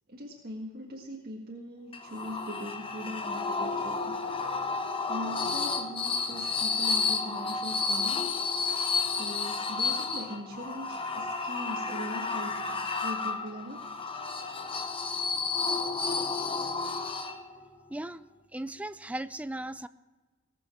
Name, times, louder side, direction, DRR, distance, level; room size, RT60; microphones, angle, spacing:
voice 1, 0.1-4.2 5.1-8.2 9.1-13.9, equal, 45° right, -3 dB, 1.8 m, -41 dB
sound 1, 1.9-17.7, left 4 dB, 25° left, 0.9 m, -31 dB
voice 2, 17.9-18.2 18.5-19.9, right 1 dB, 5° right, 13 dB, 0.3 m, -37 dB
18.5 x 7.1 x 7.3 m, 1.3 s
head